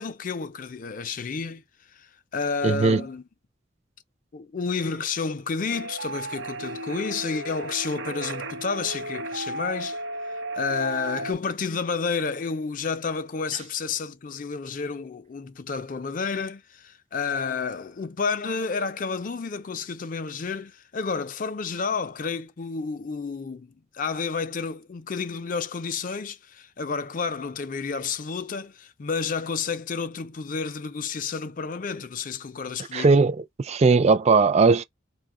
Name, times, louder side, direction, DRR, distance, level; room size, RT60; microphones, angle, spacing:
voice 1, 0.0-1.6 1.9-3.2 4.3-10.0 10.5-33.2, left 5 dB, 45° left, 0.4 m, -30 dB
voice 2, 2.6-3.0 32.9-34.8, right 4 dB, 35° right, 0.3 m, -19 dB
sound 1, 5.7-11.3, right 2 dB, 65° right, 0.7 m, -34 dB
4.4 x 2.2 x 3.7 m
head